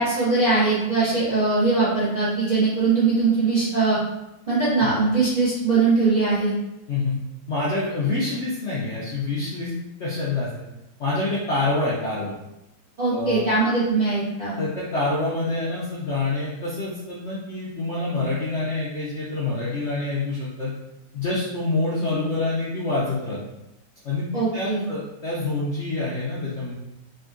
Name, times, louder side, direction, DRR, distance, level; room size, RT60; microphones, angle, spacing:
voice 1, 0.0-4.0 4.5-6.5 13.0-14.6 24.3-24.8, right 3 dB, 50° right, -10 dB, 0.5 m, -21 dB
voice 2, 7.5-9.7 10.0-10.7 11.0-12.3 13.1-13.5 14.6-20.7 21.1-23.4 24.0-24.3 24.5-26.7, left 2 dB, 65° left, -8 dB, 0.7 m, -26 dB
3.5 x 2.2 x 2.4 m, 0.89 s
omnidirectional pair, 1.9 m